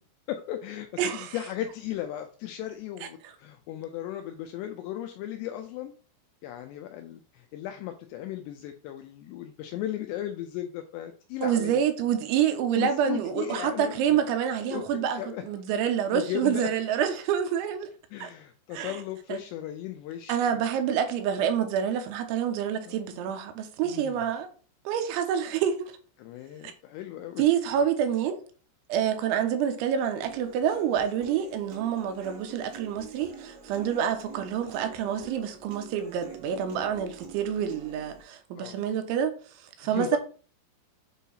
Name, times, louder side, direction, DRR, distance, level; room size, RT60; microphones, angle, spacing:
voice 1, 0.3-5.9 6.4-11.8 12.8-14.2 14.7-14.8 15.2-15.5 16.1-16.7 18.1-20.7 22.9-23.0 23.8-24.3 26.2-27.4 38.6-38.8 39.8-40.2, left 12 dB, 85° left, 2.4 m, -36 dB
voice 2, 1.0-1.4 11.4-17.9 18.2-18.3 18.7-19.0 19.3-19.4 20.3-24.5 24.9-26.0 27.4-28.4 28.9-39.3 39.6-40.2, right 9 dB, 85° right, 3.1 m, -27 dB
Human voice / Acoustic guitar, 30.2-38.2, right 5 dB, 50° right, 2.0 m, -46 dB
8.2 x 2.8 x 5.6 m
omnidirectional pair, 5.5 m